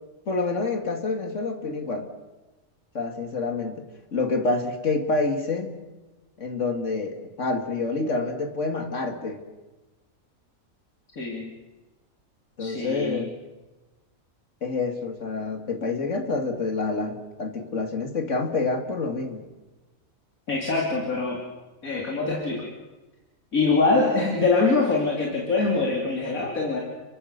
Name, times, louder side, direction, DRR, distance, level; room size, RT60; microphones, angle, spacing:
voice 1, 0.3-2.1 2.9-3.8 4.1-5.7 6.4-9.4 12.6-13.3 14.6-19.4, left 3 dB, 60° left, 5 dB, 2.6 m, -27 dB
voice 2, 11.1-11.5 12.6-13.3 20.5-21.4 21.8-22.7 23.5-26.8, left 3 dB, 85° left, -1 dB, 3.5 m, -24 dB
30.0 x 23.0 x 6.7 m, 1.2 s
omnidirectional pair, 1.4 m